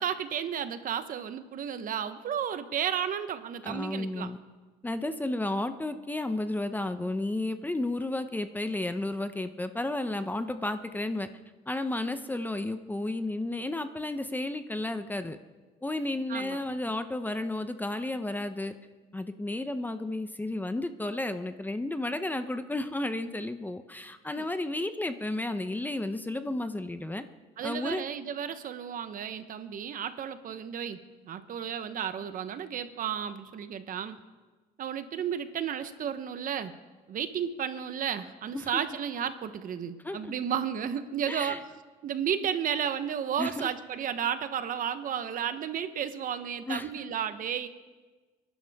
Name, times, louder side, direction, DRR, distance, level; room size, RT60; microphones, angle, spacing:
voice 1, 0.0-4.3 16.3-16.6 24.4-24.5 27.6-34.2 34.8-36.7 37.1-41.7 42.0-47.7, right 8 dB, 55° right, 11 dB, 1.0 m, -33 dB
voice 2, 3.6-4.4 4.8-11.3 11.7-15.4 15.8-18.7 19.1-27.2 27.6-28.0 38.5-38.8 40.0-40.3 41.3-41.6 43.4-43.7 46.7-46.9, left 2 dB, 10° left, 9 dB, 0.7 m, -32 dB
29.0 x 11.0 x 3.6 m, 1.3 s
cardioid pair, 110°, 17 cm